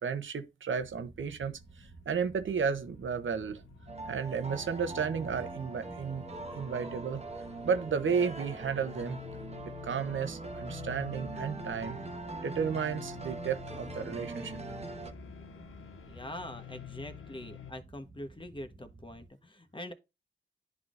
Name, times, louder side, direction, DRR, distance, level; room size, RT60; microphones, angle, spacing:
voice 1, 0.0-3.6 4.1-6.2 6.5-7.2 7.6-9.2 9.8-12.0 12.4-14.6, right 6 dB, 65° right, 0.9 m, -33 dB
sound 1, 0.8-19.3, right 3 dB, 45° right, 1.6 m, -55 dB
sound 2, 1.3-17.7, left 11 dB, 80° left, 0.8 m, -49 dB
sound 3, 3.9-15.1, right 3 dB, 30° right, 1.1 m, -42 dB
voice 2, 16.0-19.9, left 1 dB, 25° left, 1.2 m, -44 dB
10.5 x 3.6 x 2.6 m
cardioid pair, 45°, 21 cm